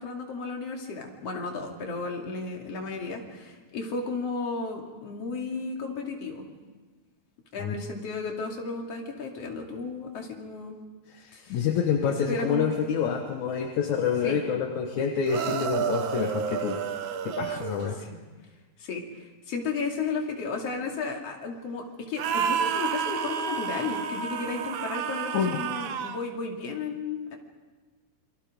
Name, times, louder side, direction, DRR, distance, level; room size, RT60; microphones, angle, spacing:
voice 1, 0.0-6.5 7.5-10.8 11.3-11.7 12.0-12.7 14.2-14.4 17.9-18.1 18.8-27.4, left 4 dB, 55° left, 1 dB, 3.5 m, -34 dB
voice 2, 11.1-16.8 17.2-18.0 25.3-25.6, left 6 dB, 75° left, 3 dB, 2.6 m, -27 dB
sound 1, 15.3-18.0 22.2-26.2, right 7 dB, 70° right, 1.2 m, -30 dB
28.5 x 24.0 x 5.2 m, 1.3 s
omnidirectional pair, 3.5 m